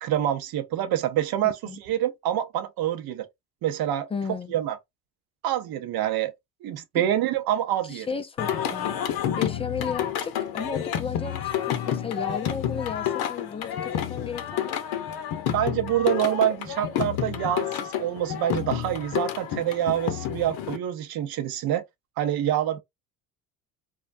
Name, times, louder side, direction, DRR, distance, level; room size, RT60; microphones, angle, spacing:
voice 1, 0.0-3.3 3.6-4.1 4.5-4.8 5.4-6.3 6.6-8.1 15.5-21.8 22.2-22.8, right 11 dB, 55° right, 0.7 m, -26 dB
voice 2, 1.4-1.8 4.1-4.5 6.9-7.0 7.8-8.9 9.4-14.7, left 6 dB, 15° left, 0.3 m, -34 dB
Singing, 8.4-20.8, left 10 dB, 55° left, 0.7 m, -29 dB
2.3 x 2.1 x 2.5 m
hypercardioid pair, 70°, 45 cm